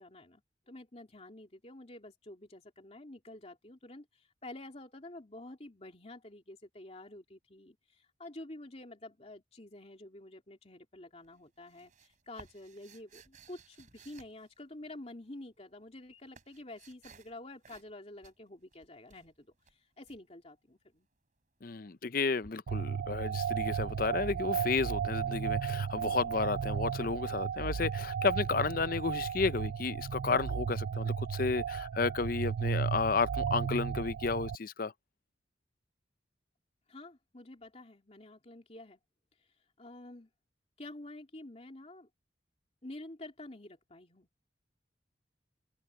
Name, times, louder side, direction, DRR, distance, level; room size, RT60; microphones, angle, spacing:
voice 1, 0.0-21.1 36.9-39.0 39.4-39.5 39.8-40.3 40.8-42.1 42.8-44.3, left 1 dB, 35° left, 2.9 m, -49 dB
sound 1, 11.2-15.1 15.8-17.4 17.6-18.0 18.2-20.2 22.4-22.5, right 4 dB, 45° right, 3.4 m, -58 dB
voice 2, 21.6-34.9, left 4 dB, 50° left, 0.6 m, -32 dB
sound 2, 22.7-34.6, right 7 dB, 80° right, 0.4 m, -34 dB
head